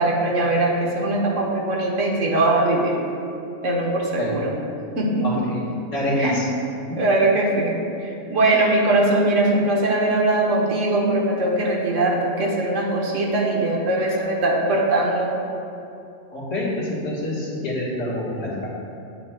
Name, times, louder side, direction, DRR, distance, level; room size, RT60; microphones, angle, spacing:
voice 1, 0.0-3.0 3.6-4.5 5.0-5.5 6.2-6.4 7.0-15.3, right 2 dB, 80° right, -2 dB, 1.4 m, -21 dB
voice 2, 5.2-5.6 5.9-6.5 16.3-18.7, left 1 dB, 80° left, -6 dB, 1.9 m, -26 dB
8.8 x 7.5 x 2.2 m, 2.6 s
omnidirectional pair, 1.3 m